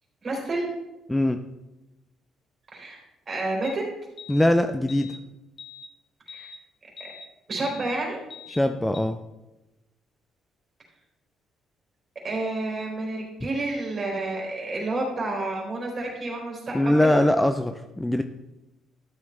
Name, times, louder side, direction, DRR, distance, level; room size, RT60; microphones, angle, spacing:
voice 1, 0.2-0.7 2.7-3.0 3.3-3.8 6.3-6.5 7.0-7.1 7.5-8.2 12.2-17.2, right 2 dB, 40° right, -1 dB, 3.9 m, -30 dB
voice 2, 1.1-1.4 4.3-5.1 8.5-9.2 16.7-18.2, left 1 dB, 10° left, 8 dB, 0.4 m, -22 dB
sound 1, 3.6-3.7 4.2-4.5 4.9-5.2 5.6-5.9 6.3-6.6 7.0-7.2 7.6-7.9 8.3-8.6 8.9-9.0, left 5 dB, 40° left, 1.0 m, -43 dB
12.5 x 7.6 x 3.3 m, 0.98 s
cardioid pair, 110°, 0 cm